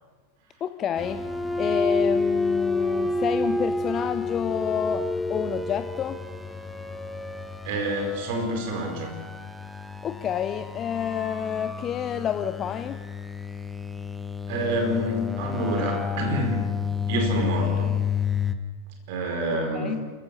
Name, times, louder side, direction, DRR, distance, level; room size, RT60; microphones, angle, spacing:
voice 1, 0.6-1.2 1.6-6.2 10.0-13.0 19.5-19.9, left 9 dB, 30° left, 11 dB, 0.7 m, -29 dB
sound 1, 1.0-18.5, left 4 dB, 5° left, 1.3 m, -29 dB
voice 2, 7.6-9.1 14.5-16.7 17.1-18.0 19.1-20.0, right 1 dB, 50° right, 4 dB, 4.6 m, -27 dB
28.0 x 15.0 x 6.8 m, 1.5 s
figure-of-eight pair, 90°, 0 cm